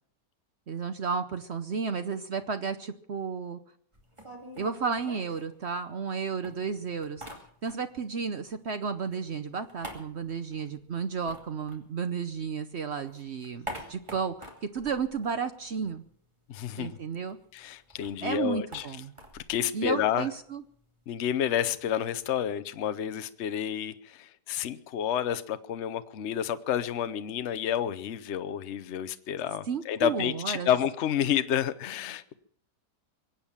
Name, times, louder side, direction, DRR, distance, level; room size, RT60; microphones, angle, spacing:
voice 1, 0.7-3.6 4.6-7.3 7.6-16.0 16.8-17.4 18.2-19.1 19.7-20.6 29.7-30.7, right 6 dB, 50° right, 9 dB, 0.9 m, -33 dB
sound 1, 3.9-6.1 6.4-8.1 8.3-12.5 12.8-16.1 16.4-16.5 16.7-22.5, equal, 15° right, 2.5 m, -47 dB
voice 2, 16.5-17.0 17.5-18.8 19.3-20.3 21.1-32.3, left 9 dB, 55° left, 12 dB, 0.9 m, -30 dB
23.0 x 8.6 x 7.3 m, 0.65 s
omnidirectional pair, 1.9 m